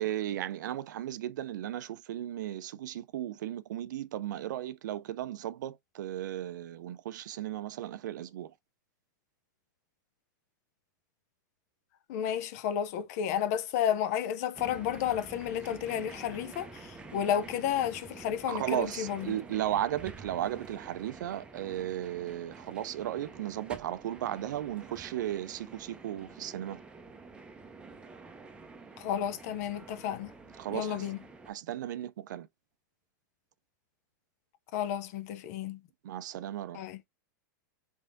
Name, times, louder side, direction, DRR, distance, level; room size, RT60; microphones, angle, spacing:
voice 1, 0.0-8.5 18.5-26.8 30.6-31.1 31.5-32.5 36.0-36.8, right 12 dB, 80° right, 0.5 m, -35 dB
voice 2, 12.1-19.3 29.0-30.3 30.7-31.2 34.7-35.8 36.7-37.0, left 9 dB, 55° left, 0.6 m, -32 dB
sound 1, 14.6-31.5, right 3 dB, 10° right, 0.6 m, -49 dB
3.5 x 3.4 x 2.6 m
supercardioid pair, 135°, 10 cm